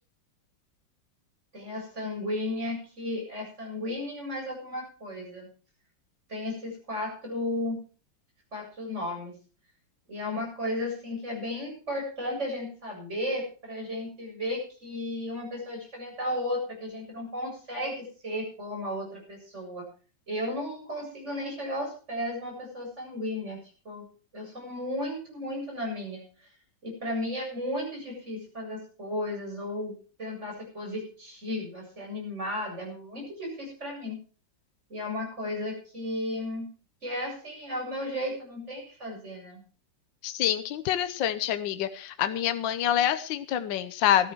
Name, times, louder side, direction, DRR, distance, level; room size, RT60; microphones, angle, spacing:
voice 1, 1.5-5.5 6.3-7.8 8.5-9.3 10.1-19.8 20.3-23.6 23.8-24.0 24.3-26.2 26.8-29.9 30.2-34.2 34.9-36.7 37.0-39.6, left 1 dB, 35° right, -1 dB, 7.9 m, -34 dB
voice 2, 40.2-44.3, left 11 dB, 75° left, 11 dB, 1.6 m, -26 dB
15.5 x 12.5 x 4.7 m, 0.39 s
omnidirectional pair, 2.1 m